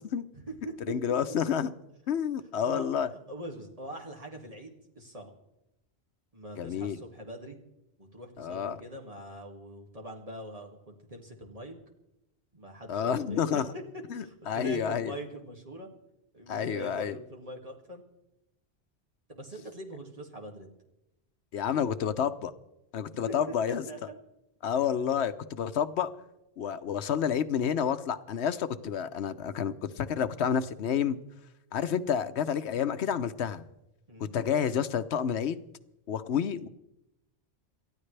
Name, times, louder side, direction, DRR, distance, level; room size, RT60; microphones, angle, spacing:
voice 1, 0.3-0.8 1.3-1.4 2.6-5.3 6.3-7.6 8.0-11.8 12.5-13.4 13.7-13.8 14.2-15.9 16.3-18.0 19.3-20.7 23.3-23.4 23.7-24.2 34.1-34.4, right 1 dB, 35° right, 1 dB, 2.3 m, -43 dB
voice 2, 0.9-1.7 2.1-3.1 6.6-7.0 8.4-8.8 12.9-13.6 14.1-15.1 16.5-17.2 21.5-22.5 22.9-23.8 24.6-26.1 26.6-31.2 31.7-33.6 34.2-35.6 36.1-36.7, left 8 dB, 85° left, 11 dB, 1.0 m, -29 dB
28.5 x 13.0 x 3.3 m, 0.91 s
omnidirectional pair, 1.1 m